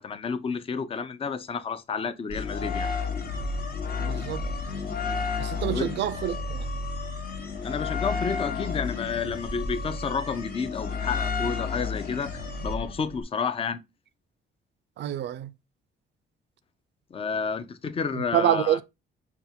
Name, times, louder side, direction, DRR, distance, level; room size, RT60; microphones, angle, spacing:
voice 1, 0.0-2.9 5.7-5.9 7.6-13.8 17.1-18.8, left 5 dB, 30° left, 0.5 m, -30 dB
sound 1, 2.3-13.2, left 4 dB, 50° left, 0.9 m, -31 dB
voice 2, 4.0-4.5 5.4-6.7 15.0-15.5 18.1-18.8, right 11 dB, 65° right, 0.4 m, -27 dB
5.6 x 2.4 x 2.7 m
cardioid pair, 90°, 20 cm